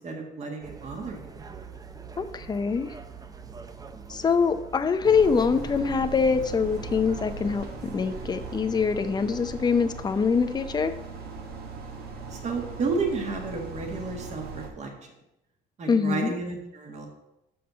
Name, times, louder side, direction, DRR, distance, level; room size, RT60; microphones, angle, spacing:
voice 1, 0.0-1.4 12.3-14.9 15.8-17.1, right 4 dB, 40° right, 2 dB, 1.7 m, -32 dB
sound 1, 0.6-8.6, right 5 dB, 20° right, 0.6 m, -43 dB
voice 2, 2.2-2.9 4.1-10.9 15.9-16.3, left 5 dB, 25° left, 9 dB, 0.6 m, -24 dB
sound 2, 5.0-14.7, right 4 dB, 65° right, 1.6 m, -39 dB
6.5 x 5.6 x 6.8 m, 0.88 s
cardioid pair, 110°, 17 cm